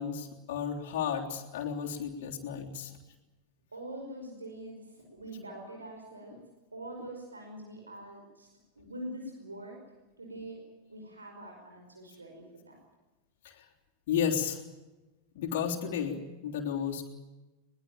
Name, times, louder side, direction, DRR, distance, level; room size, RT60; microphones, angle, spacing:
voice 1, 0.0-2.9 13.4-13.7 14.1-14.6 15.4-17.1, left 7 dB, 50° left, -1 dB, 3.6 m, -33 dB
voice 2, 3.7-6.4 6.7-8.5 8.8-9.8 10.2-10.6 10.9-12.8, right 1 dB, 75° right, 2 dB, 5.4 m, -44 dB
22.0 x 21.0 x 8.9 m, 1.1 s
figure-of-eight pair, 90°, 0 cm